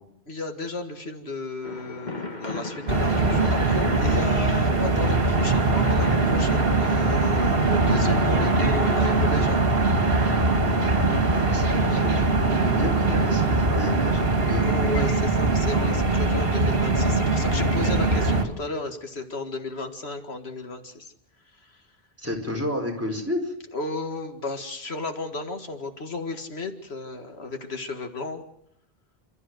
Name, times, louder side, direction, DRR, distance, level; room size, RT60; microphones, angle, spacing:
voice 1, 0.3-9.6 14.6-21.1 21.6-21.8 23.7-28.4, left 3 dB, 85° left, 6 dB, 2.2 m, -34 dB
sound 1, 1.6-7.4, left 2 dB, 45° left, 2.1 m, -37 dB
sound 2, 2.9-18.5, right 3 dB, 65° right, 2.5 m, -22 dB
voice 2, 11.1-14.7 22.2-23.5, left 1 dB, 15° right, 2 dB, 4.9 m, -31 dB
29.5 x 13.5 x 7.9 m, 0.76 s
omnidirectional pair, 1.1 m